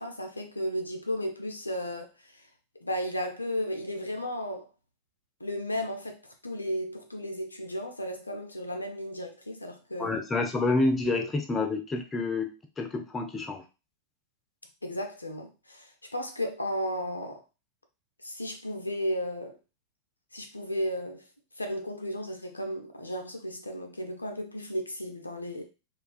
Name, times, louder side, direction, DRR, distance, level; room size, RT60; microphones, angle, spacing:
voice 1, 0.0-2.4 2.8-4.7 5.4-10.2 11.1-11.3 14.8-17.4 18.2-19.6 20.3-21.2 21.6-25.6, equal, 85° left, 0.4 m, -34 dB
voice 2, 10.0-13.6, left 3 dB, 15° left, 0.4 m, -28 dB
2.3 x 2.2 x 2.4 m
figure-of-eight pair, 90°, 0 cm